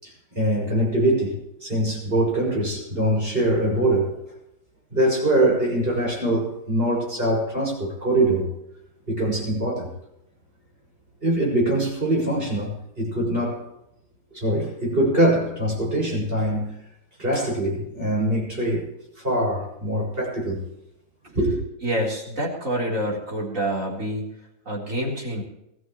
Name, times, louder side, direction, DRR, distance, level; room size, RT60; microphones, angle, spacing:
voice 1, 0.0-4.2 4.9-8.6 9.1-9.9 11.2-13.6 14.3-16.8 17.2-18.9 19.2-20.6 21.3-21.6, right 1 dB, 30° right, 7.0 m, -23 dB
voice 2, 21.8-24.3 24.7-25.4, right 1 dB, 50° right, 4.5 m, -27 dB
22.5 x 14.0 x 3.2 m
omnidirectional pair, 1.8 m